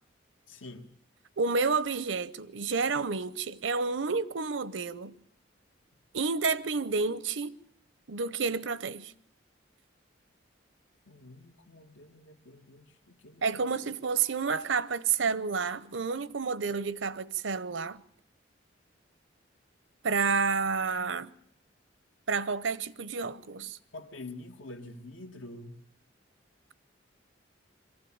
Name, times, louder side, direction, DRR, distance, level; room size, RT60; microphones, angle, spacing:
voice 1, 0.5-0.9 11.1-14.0 23.9-25.8, left 2 dB, 85° left, 1.7 m, -47 dB
voice 2, 1.4-5.2 6.1-7.6 8.1-9.1 13.4-18.0 20.0-21.3 22.3-23.8, right 5 dB, 75° right, 0.8 m, -30 dB
22.5 x 15.5 x 8.7 m
head